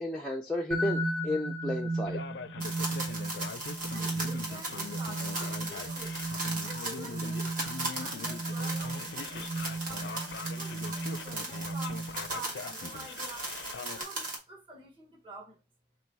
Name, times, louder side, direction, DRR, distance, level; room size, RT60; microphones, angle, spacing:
voice 1, 0.0-2.2, left 1 dB, 5° left, 0.4 m, -33 dB
sound 1, 0.7-12.4, right 2 dB, 75° right, 1.1 m, -36 dB
Male speech man speaking, 2.1-14.0, left 5 dB, 65° left, 0.4 m, -43 dB
sound 2, 2.6-14.4, right 2 dB, 45° right, 1.6 m, -38 dB
voice 2, 3.9-6.2 6.6-13.5 14.0-15.6, right 2 dB, 30° right, 1.3 m, -47 dB
3.4 x 3.0 x 4.6 m
head